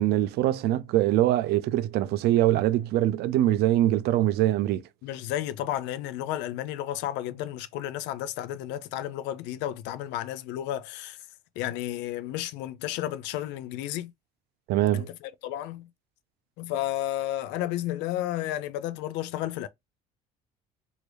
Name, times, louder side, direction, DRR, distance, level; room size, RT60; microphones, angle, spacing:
voice 1, 0.0-4.8 14.7-15.1, right 14 dB, 60° right, 0.4 m, -23 dB
voice 2, 5.0-11.2 11.6-14.1 14.9-15.9 16.6-19.7, left 13 dB, 65° left, 0.5 m, -32 dB
3.0 x 2.7 x 2.9 m
hypercardioid pair, 70°, 19 cm